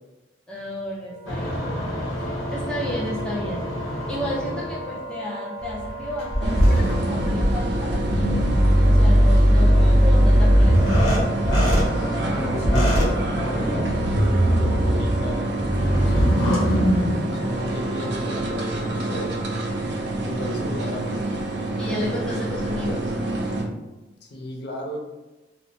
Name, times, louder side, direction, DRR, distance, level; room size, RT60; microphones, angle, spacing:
voice 1, 0.5-1.7 2.1-3.7 4.1-8.5 8.8-10.9 21.8-23.1, left 1 dB, 5° left, -6 dB, 0.4 m, -32 dB
Wind instrument woodwind instrument, 1.0-20.1, equal, 35° left, 0.9 m, -38 dB
sound 1, 1.3-5.0 5.6-17.2, equal, 85° left, 0.9 m, -20 dB
sound 2, 6.4-23.6, right 2 dB, 65° right, 0.4 m, -28 dB
voice 2, 9.5-9.9 12.3-15.4 15.9-19.3 20.3-21.2 24.2-25.0, equal, 60° left, -1 dB, 0.5 m, -34 dB
3.0 x 2.0 x 2.6 m, 1.1 s
head